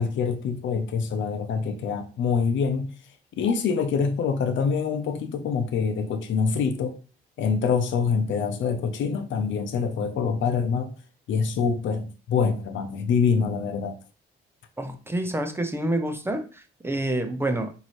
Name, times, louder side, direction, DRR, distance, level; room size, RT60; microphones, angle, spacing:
voice 1, 0.0-2.9 3.4-7.0 7.4-11.0 11.3-14.0, left 5 dB, 70° left, 0.7 m, -25 dB
voice 2, 14.8-17.7, right 1 dB, 10° right, 0.6 m, -28 dB
5.2 x 2.7 x 3.1 m
cardioid pair, 90°, 20 cm